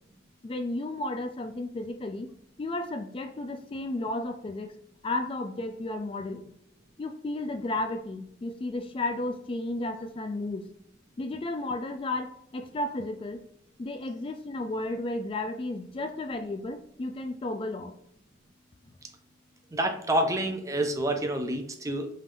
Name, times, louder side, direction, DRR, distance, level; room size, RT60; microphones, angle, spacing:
voice 1, 0.4-2.3 2.6-4.7 5.0-6.5 7.0-10.7 11.2-13.4 13.8-17.9, left 2 dB, 30° left, 7 dB, 0.3 m, -33 dB
voice 2, 19.7-22.1, right 1 dB, 15° right, 4 dB, 0.6 m, -28 dB
5.5 x 3.3 x 2.5 m, 0.71 s
head